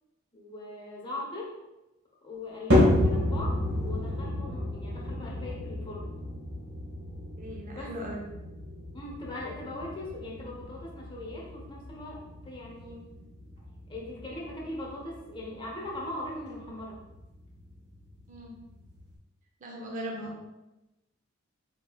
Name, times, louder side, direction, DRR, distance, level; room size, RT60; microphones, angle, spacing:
voice 1, 0.3-1.6 2.2-6.1 7.7-7.9 8.9-13.1 13.9-17.0, left 1 dB, 25° left, -4 dB, 1.0 m, -40 dB
sound 1, 2.7-19.1, left 1 dB, 60° right, 1.1 m, -31 dB
voice 2, 7.4-8.2 18.3-18.5 19.6-20.4, equal, 40° right, 0 dB, 0.6 m, -38 dB
3.8 x 3.5 x 2.3 m, 0.99 s
head